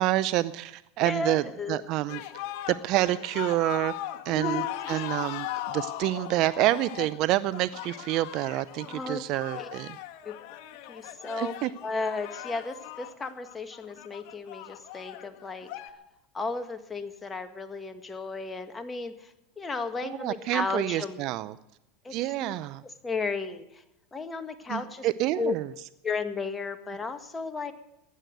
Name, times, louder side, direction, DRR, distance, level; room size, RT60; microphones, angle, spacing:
voice 1, 0.0-3.9 4.2-10.0 11.4-11.7 20.0-21.5 22.1-22.8 24.7-25.7, right 15 dB, 55° right, 16 dB, 0.6 m, -28 dB
voice 2, 1.0-1.8 4.3-5.1 8.9-9.2 9.5-9.7 10.3-10.4 10.9-11.5 11.8-15.7 16.3-21.2 22.0-22.1 22.4-23.8 24.1-25.1 25.4-25.5 26.0-27.7, left 4 dB, 20° left, 7 dB, 2.0 m, -34 dB
sound 1, 2.1-15.9, left 14 dB, 60° left, 1.8 m, -38 dB
16.0 x 11.0 x 8.0 m, 0.89 s
hypercardioid pair, 100°, 0 cm